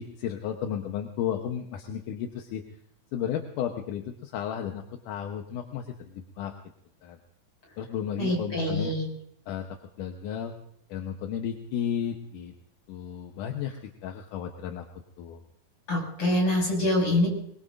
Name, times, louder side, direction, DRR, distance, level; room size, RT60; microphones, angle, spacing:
voice 1, 0.0-2.6 3.1-6.5 7.0-7.2 7.8-9.0 9.5-10.5 10.9-12.5 12.9-13.8 14.0-14.9 15.2-15.4, left 9 dB, 70° left, 4 dB, 2.3 m, -33 dB
voice 2, 8.2-9.1 15.9-17.3, left 1 dB, 35° left, -1 dB, 7.1 m, -25 dB
24.0 x 21.5 x 2.6 m, 0.71 s
omnidirectional pair, 4.3 m